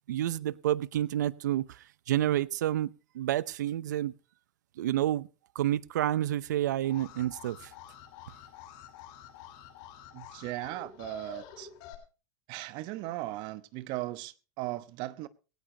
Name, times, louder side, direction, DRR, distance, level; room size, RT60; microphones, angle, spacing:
voice 1, 0.1-4.1 4.8-5.3 5.5-7.7, right 12 dB, 85° right, 0.7 m, -29 dB
Alarm, 6.8-11.9, left 10 dB, 55° left, 7.5 m, -49 dB
voice 2, 10.1-11.7 12.5-15.3, right 17 dB, 55° right, 1.0 m, -37 dB
17.5 x 17.0 x 2.9 m
supercardioid pair, 120°, 9 cm